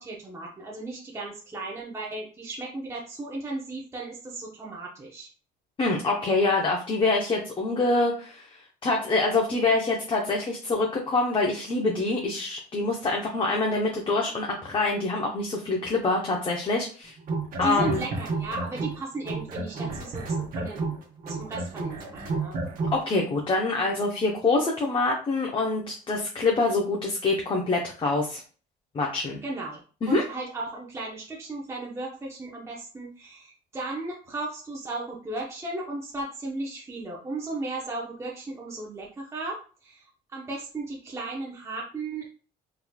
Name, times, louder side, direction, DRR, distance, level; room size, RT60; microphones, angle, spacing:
voice 1, 0.0-5.3 17.6-21.0 21.3-22.6 29.4-29.8 30.1-42.3, right 2 dB, 15° right, -3 dB, 0.8 m, -35 dB
voice 2, 5.8-17.1 17.6-18.0 22.9-28.4 28.9-29.4 30.0-30.2, left 3 dB, 30° left, 0 dB, 0.7 m, -25 dB
sound 1, 17.2-19.0 19.2-23.0, right 3 dB, 55° right, 1.2 m, -31 dB
3.9 x 3.0 x 2.3 m, 0.39 s
cardioid pair, 110°, 17 cm